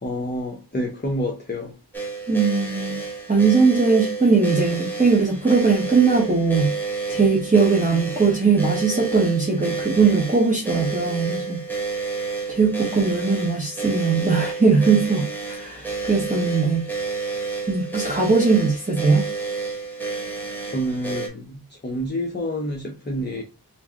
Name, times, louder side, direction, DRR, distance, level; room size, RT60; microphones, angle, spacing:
voice 1, 0.0-1.8 20.6-23.4, equal, 25° left, 0.7 m, -28 dB
sound 1, 1.9-21.3, right 4 dB, 5° left, 1.0 m, -30 dB
voice 2, 2.3-3.0 3.3-6.7 7.1-11.6 12.5-16.9 17.7-19.3, right 4 dB, 20° right, 0.9 m, -20 dB
3.1 x 2.6 x 3.6 m
wide cardioid pair, 80°, 41 cm